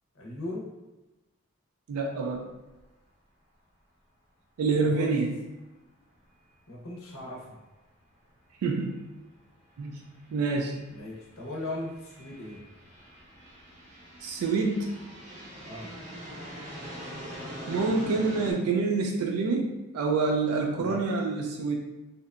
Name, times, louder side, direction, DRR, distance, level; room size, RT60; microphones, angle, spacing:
voice 1, 0.2-0.7 4.8-5.1 6.7-7.6 10.9-12.6 15.6-15.9 20.7-21.0, left 1 dB, 65° left, -2 dB, 0.6 m, -38 dB
voice 2, 1.9-2.4 4.6-5.4 8.6-9.0 9.8-10.0 10.3-10.8 14.2-14.9 17.7-21.8, right 4 dB, 90° right, 1 dB, 0.3 m, -27 dB
sound 1, 2.4-2.5 2.8-2.9 6.9-7.0 8.1-8.3 9.0-18.5, equal, 30° right, 0.5 m, -43 dB
2.7 x 2.1 x 2.4 m, 1.1 s
head